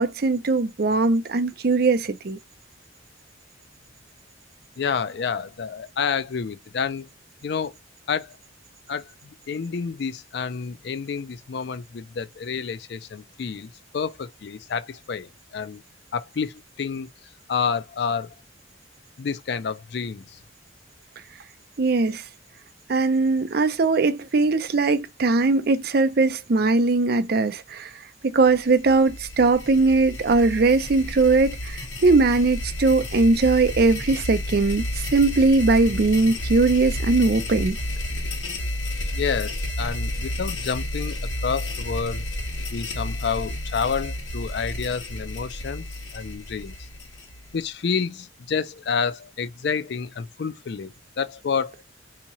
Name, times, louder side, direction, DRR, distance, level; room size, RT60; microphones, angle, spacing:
voice 1, 0.0-2.4 21.8-22.3 22.9-27.9 28.3-37.8, right 3 dB, 55° right, 0.5 m, -20 dB
voice 2, 4.8-7.1 7.4-7.7 8.1-8.4 8.9-15.8 16.1-17.1 17.5-18.3 19.2-20.2 39.1-42.3 42.7-45.8 46.1-46.7 47.5-51.7, left 6 dB, 60° left, 0.4 m, -29 dB
sound 1, 28.5-47.6, left 1 dB, 75° left, 1.2 m, -31 dB
3.6 x 2.9 x 2.9 m
head